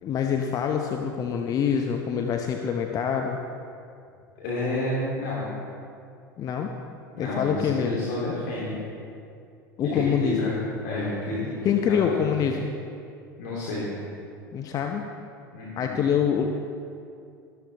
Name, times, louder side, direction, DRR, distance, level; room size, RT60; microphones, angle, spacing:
voice 1, 0.0-3.4 6.4-6.7 7.2-8.0 9.8-10.5 11.6-12.7 14.5-15.0 15.8-16.4, left 7 dB, 35° left, 3 dB, 0.8 m, -25 dB
voice 2, 4.4-5.6 7.1-8.8 9.9-10.6 10.8-11.6 11.8-12.3 13.4-13.9 15.5-15.9, left 1 dB, 55° left, -7 dB, 2.8 m, -30 dB
13.0 x 12.5 x 4.1 m, 2.5 s
figure-of-eight pair, 75°, 11 cm